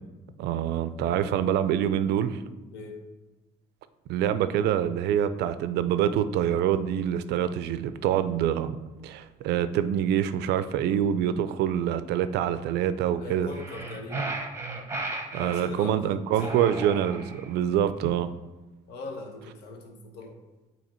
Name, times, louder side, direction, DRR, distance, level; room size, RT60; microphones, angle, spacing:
voice 1, 0.4-2.4 4.1-8.8 9.0-13.5 15.3-18.3, right 10 dB, 80° right, 13 dB, 0.4 m, -26 dB
voice 2, 2.7-3.0 13.2-14.4 15.4-16.7 18.9-20.4, left 4 dB, 80° left, 3 dB, 1.1 m, -40 dB
sound 1, 13.5-15.7 16.3-17.6, right 3 dB, 15° right, 0.8 m, -35 dB
8.6 x 2.9 x 4.3 m, 1.1 s
cardioid pair, 110°, 17 cm